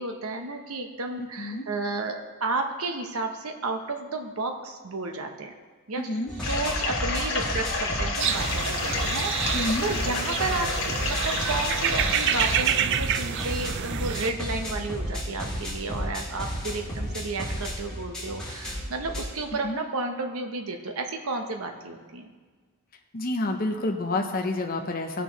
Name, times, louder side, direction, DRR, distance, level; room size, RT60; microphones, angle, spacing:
voice 1, 0.0-5.5 5.9-6.1 6.4-10.7 11.0-22.3, right 3 dB, 75° right, 5 dB, 0.9 m, -32 dB
voice 2, 6.0-6.3 9.5-9.8 19.6-19.8 23.1-25.2, left 2 dB, 40° left, 3 dB, 0.7 m, -28 dB
sound 1, 6.3-19.2, equal, 5° left, 2.5 m, -33 dB
sound 2, 6.4-12.6, left 3 dB, 65° left, 1.4 m, -30 dB
sound 3, 8.2-14.3, right 9 dB, 55° right, 0.3 m, -28 dB
16.5 x 6.1 x 3.1 m, 1.5 s
head